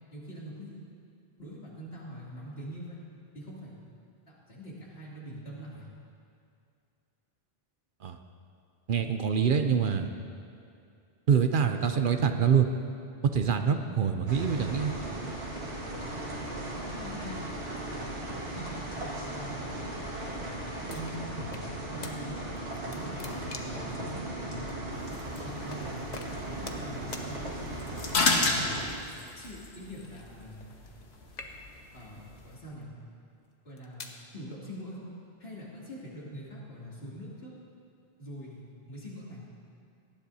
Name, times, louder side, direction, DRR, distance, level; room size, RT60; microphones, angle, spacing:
voice 1, 0.1-0.8 1.4-2.9 3.3-3.8 4.3-5.9 16.7-17.5 17.8-19.8 20.2-20.6 20.9-22.4 22.9-24.8 25.4-25.9 26.4-27.4 28.4-29.0 29.4-30.8 31.9-32.9 33.6-35.1 35.4-37.5 38.2-39.4, equal, 70° left, -6 dB, 3.0 m, -44 dB
voice 2, 8.9-10.1 11.3-12.7 13.2-14.9, right 7 dB, 60° right, 7 dB, 0.7 m, -25 dB
sound 1, 14.3-28.8, right 1 dB, 85° right, 2.2 m, -37 dB
sound 2, 20.9-21.7 22.0-22.2 22.6-23.9 24.7-24.8 25.7-25.8 26.1-26.9 27.1-27.3 28.0-28.5 29.4-31.0 31.3-31.9 32.6-32.8 33.5-34.2, left 4 dB, 45° left, 0.9 m, -45 dB
sound 3, 24.9-32.6, left 3 dB, 90° left, 1.4 m, -34 dB
18.5 x 13.0 x 2.8 m, 2.4 s
omnidirectional pair, 1.0 m